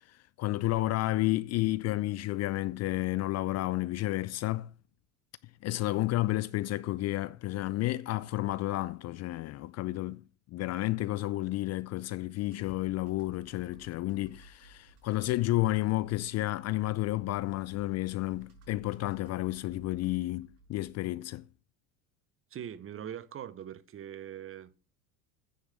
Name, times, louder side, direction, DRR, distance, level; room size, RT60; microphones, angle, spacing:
voice 1, 0.0-4.7 5.6-10.2 10.5-21.5, left 17 dB, 40° left, 0.4 m, -31 dB
Computer keyboard, 12.3-20.9, right 2 dB, 75° right, 5.6 m, -58 dB
voice 2, 22.5-24.7, right 10 dB, 30° right, 0.9 m, -42 dB
9.6 x 6.5 x 6.4 m
hypercardioid pair, 85°, 44 cm